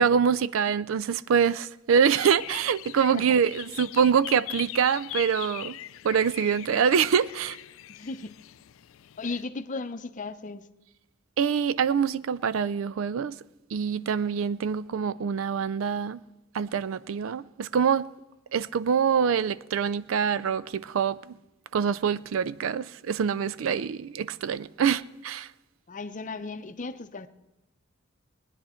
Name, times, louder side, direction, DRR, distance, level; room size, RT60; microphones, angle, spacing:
voice 1, 0.0-5.8 6.0-7.6 11.4-13.4 13.7-16.2 16.5-18.1 18.5-21.4 21.7-25.5, right 7 dB, 80° right, 0.4 m, -25 dB
sound 1, 2.1-9.4, left 15 dB, 80° left, 0.4 m, -41 dB
voice 2, 7.9-8.4 9.2-10.7 25.9-27.3, left 3 dB, 40° left, 0.6 m, -36 dB
19.5 x 9.9 x 4.3 m
head